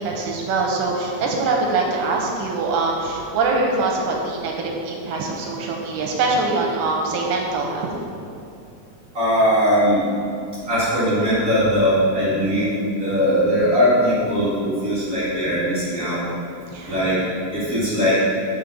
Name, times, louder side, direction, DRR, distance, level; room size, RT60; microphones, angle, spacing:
voice 1, 0.0-7.9 16.7-17.0, right 3 dB, 80° right, -1 dB, 2.3 m, -23 dB
voice 2, 9.1-10.0 10.7-16.2 16.9-17.2 17.5-18.2, equal, 35° right, -10 dB, 1.3 m, -20 dB
6.2 x 5.7 x 5.2 m, 2.6 s
omnidirectional pair, 4.0 m